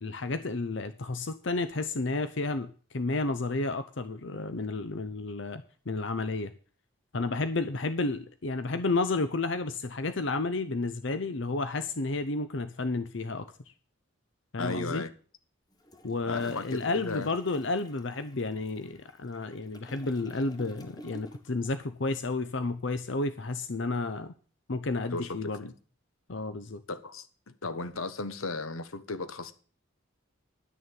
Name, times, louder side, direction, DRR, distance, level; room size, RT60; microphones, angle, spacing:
voice 1, 0.0-6.5 7.1-13.5 14.5-15.0 16.0-24.3 24.7-25.6 26.3-26.8, left 3 dB, 60° left, 0.7 m, -31 dB
voice 2, 14.6-15.1 16.3-17.3 25.1-25.7 26.9-27.3 27.6-29.5, left 3 dB, 85° left, 1.3 m, -35 dB
Toilet flush, 15.7-21.7 22.0-22.2, left 1 dB, 20° left, 1.2 m, -52 dB
10.5 x 6.7 x 9.0 m
head